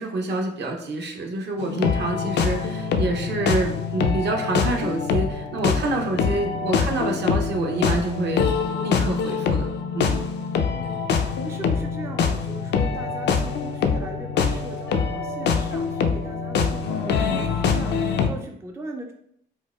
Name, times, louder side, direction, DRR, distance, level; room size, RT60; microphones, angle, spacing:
voice 1, 0.0-8.5 8.8-10.3, right 2 dB, 60° right, 3 dB, 0.7 m, -27 dB
sound 1, 1.6-18.3, left 5 dB, 60° left, 0.4 m, -24 dB
voice 2, 6.3-6.7 10.7-19.1, right 2 dB, 15° right, 4 dB, 0.3 m, -39 dB
4.5 x 2.1 x 2.2 m, 0.71 s
cardioid pair, 90°, 20 cm